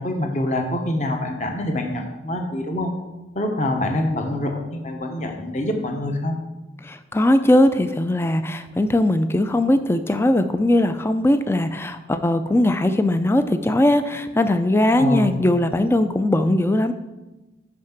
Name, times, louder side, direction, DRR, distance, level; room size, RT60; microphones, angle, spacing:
voice 1, 0.0-2.9 3.3-6.4 8.2-8.3 15.0-15.4, left 1 dB, 40° left, 3 dB, 1.0 m, -25 dB
voice 2, 6.8-16.9, left 1 dB, 15° left, 10 dB, 0.3 m, -19 dB
6.0 x 5.7 x 5.9 m, 1.1 s
head